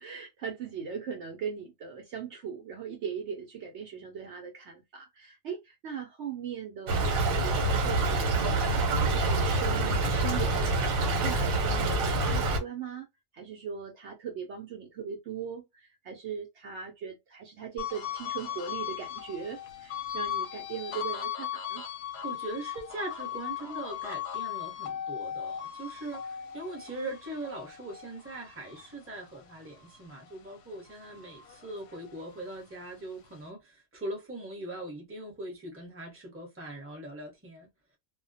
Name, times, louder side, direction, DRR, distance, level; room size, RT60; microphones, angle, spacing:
voice 1, 0.0-13.1 13.3-21.8, right 7 dB, 65° right, 0.8 m, -39 dB
Stream / Trickle dribble, 6.9-12.6, right 2 dB, 80° right, 1.1 m, -26 dB
sound 1, 17.8-30.4 30.8-32.5, left 10 dB, 65° left, 0.8 m, -38 dB
voice 2, 22.2-37.7, right 1 dB, 10° right, 0.8 m, -41 dB
2.3 x 2.1 x 2.6 m
omnidirectional pair, 1.4 m